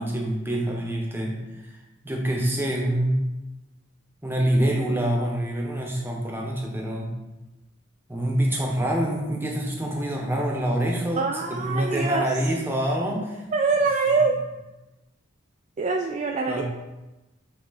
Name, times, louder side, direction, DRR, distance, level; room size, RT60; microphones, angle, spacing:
voice 1, 0.0-1.8 2.0-3.3 4.2-7.1 8.1-13.4 16.5-16.6, right 1 dB, 10° right, -1 dB, 1.0 m, -26 dB
voice 2, 11.2-12.3 13.5-14.4 15.8-16.6, right 4 dB, 35° right, 3 dB, 0.3 m, -24 dB
7.6 x 3.7 x 3.9 m, 1.0 s
head